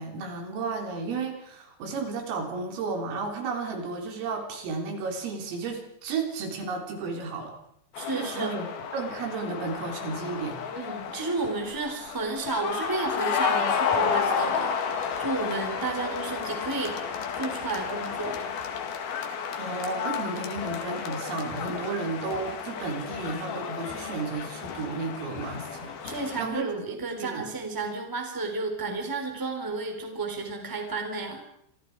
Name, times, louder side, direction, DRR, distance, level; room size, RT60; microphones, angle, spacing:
voice 1, 0.0-7.5 8.1-8.7 8.9-10.6 19.6-25.9 26.4-26.7 27.2-27.5, right 4 dB, 75° right, 3 dB, 6.3 m, -33 dB
sound 1, 7.9-26.4, left 6 dB, 55° left, 3.4 m, -32 dB
voice 2, 8.0-8.5 10.7-16.9 17.3-18.4 26.0-31.4, right 3 dB, 5° right, 3 dB, 3.1 m, -32 dB
27.5 x 25.5 x 4.8 m, 0.77 s
omnidirectional pair, 6.0 m